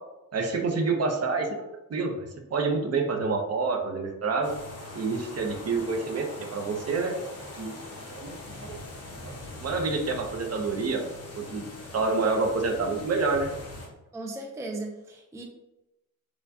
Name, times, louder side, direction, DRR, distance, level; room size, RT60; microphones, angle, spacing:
voice 1, 0.3-1.5 1.9-4.5 4.9-6.3 6.5-7.1 7.6-7.8 8.1-8.8 9.2-9.3 9.6-13.5, right 4 dB, 50° right, 3 dB, 0.6 m, -28 dB
sound 1, 4.4-13.9, left 2 dB, 50° left, 0.9 m, -42 dB
voice 2, 14.1-15.4, right 2 dB, 10° right, 2 dB, 0.4 m, -37 dB
4.4 x 2.2 x 2.6 m, 0.96 s
wide cardioid pair, 110°, 33 cm